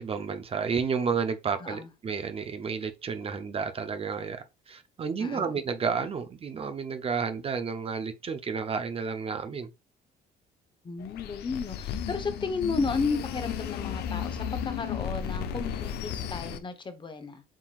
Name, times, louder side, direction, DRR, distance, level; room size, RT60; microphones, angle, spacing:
voice 1, 0.0-9.7, right 5 dB, 35° right, 0.7 m, -31 dB
voice 2, 10.8-17.4, left 4 dB, 30° left, 1.0 m, -33 dB
sound 1, 11.0-16.6, left 8 dB, 75° left, 0.7 m, -34 dB
7.4 x 2.9 x 2.4 m
cardioid pair, 110°, 17 cm